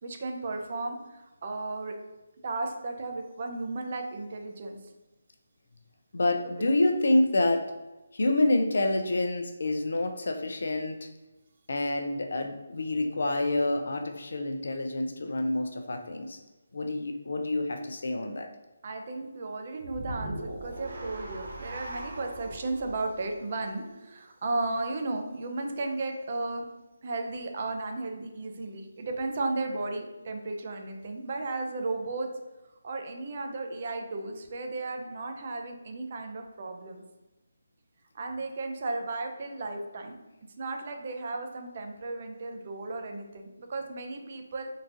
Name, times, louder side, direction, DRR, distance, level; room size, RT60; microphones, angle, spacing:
voice 1, 0.0-2.0 2.4-4.8 6.6-6.7 18.8-26.7 27.0-32.3 32.8-37.0 38.1-40.2 40.6-44.7, right 2 dB, 45° right, 4 dB, 0.5 m, -34 dB
voice 2, 6.1-7.7 8.1-11.1 11.7-16.4 16.7-18.5, left 2 dB, 70° left, 6 dB, 0.4 m, -27 dB
sound 1, 19.8-24.2, right 1 dB, 70° right, 0.8 m, -41 dB
3.7 x 2.4 x 2.7 m, 1.0 s
figure-of-eight pair, 160°, 0 cm